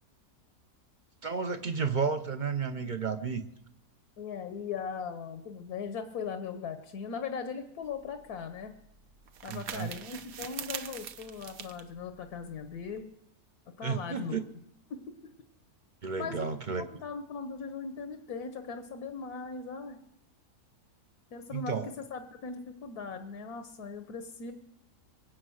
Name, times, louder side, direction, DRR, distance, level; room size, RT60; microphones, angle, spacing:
voice 1, 1.2-3.4 9.5-9.9 13.8-14.5 16.0-16.9 21.5-21.9, right 5 dB, 40° right, 8 dB, 0.7 m, -32 dB
voice 2, 4.2-8.8 9.4-13.1 13.8-14.4 14.9-15.2 16.2-20.0 21.3-24.5, left 5 dB, 85° left, 7 dB, 1.5 m, -39 dB
sound 1, 7.8-13.0, right 8 dB, 75° right, 1.2 m, -44 dB
23.5 x 8.4 x 6.4 m, 0.79 s
omnidirectional pair, 1.6 m